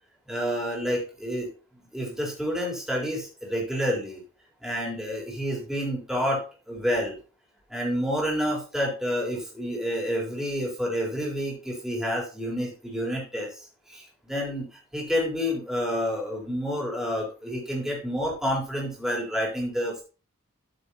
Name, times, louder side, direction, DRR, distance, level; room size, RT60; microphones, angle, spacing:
voice 1, 0.3-4.2 4.6-7.2 7.7-20.0, equal, ahead, -2 dB, 4.1 m, -29 dB
13.5 x 7.0 x 2.9 m, 0.33 s
head